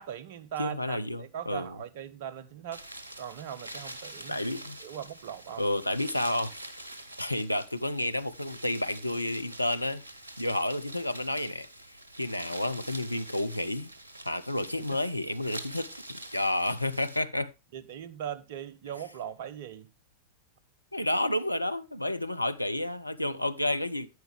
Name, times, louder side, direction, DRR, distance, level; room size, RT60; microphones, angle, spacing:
voice 1, 0.0-2.8 3.2-4.4 4.8-5.6 17.7-19.9, right 9 dB, 50° right, 0.9 m, -40 dB
voice 2, 0.6-1.8 4.3-4.8 5.6-6.5 7.2-10.0 10.4-11.7 12.2-13.9 14.2-17.5 20.9-24.1, left 1 dB, 85° left, 0.6 m, -30 dB
sound 1, 2.7-17.2, right 1 dB, 80° right, 1.1 m, -45 dB
10.5 x 9.2 x 3.4 m
figure-of-eight pair, 90°, 0 cm